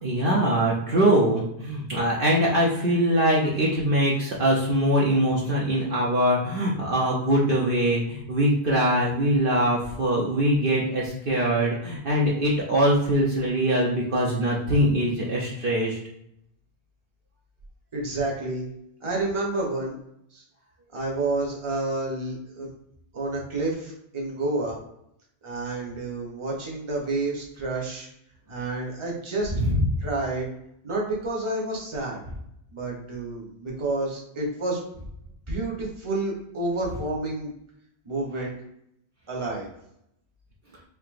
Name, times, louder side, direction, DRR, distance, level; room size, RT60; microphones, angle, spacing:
voice 1, 0.0-16.0 29.5-29.8, right 1 dB, 60° right, -4 dB, 0.9 m, -22 dB
voice 2, 17.9-18.7 19.0-20.0 20.3-20.4 20.9-22.7 23.1-24.8 25.4-28.1 28.5-29.5 30.0-30.5 30.8-32.2 32.7-34.8 35.5-37.5 38.0-38.5 39.3-39.7, right 2 dB, 30° right, -3 dB, 1.0 m, -29 dB
4.6 x 2.8 x 2.5 m, 0.77 s
omnidirectional pair, 1.1 m